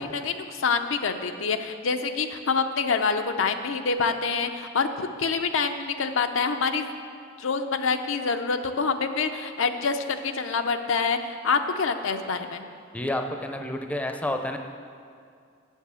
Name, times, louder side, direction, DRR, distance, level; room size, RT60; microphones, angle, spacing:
voice 1, 0.0-6.9 7.4-12.6, left 5 dB, 85° left, 6 dB, 0.6 m, -26 dB
voice 2, 12.9-14.6, left 1 dB, 5° left, 4 dB, 0.5 m, -29 dB
7.5 x 7.3 x 6.9 m, 2.3 s
head